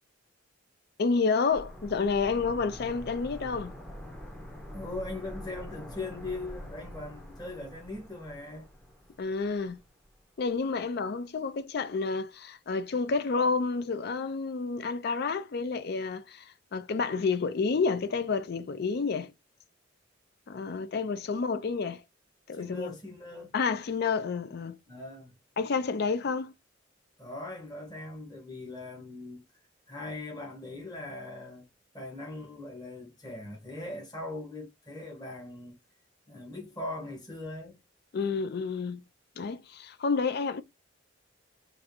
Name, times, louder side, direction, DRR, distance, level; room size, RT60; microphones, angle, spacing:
voice 1, 1.0-3.7 9.2-9.8 10.4-19.3 20.5-22.0 22.5-22.9 23.5-24.8 25.6-26.5 38.1-39.0 39.4-40.6, left 4 dB, 55° left, 0.4 m, -29 dB
sound 1, 1.5-10.2 10.5-10.6, equal, 5° left, 0.6 m, -45 dB
voice 2, 4.7-8.7 21.4-21.7 22.5-23.5 24.9-25.3 27.2-29.4 29.9-31.7 31.9-35.8 36.3-37.8, left 2 dB, 20° left, 1.2 m, -40 dB
3.3 x 2.5 x 2.7 m
head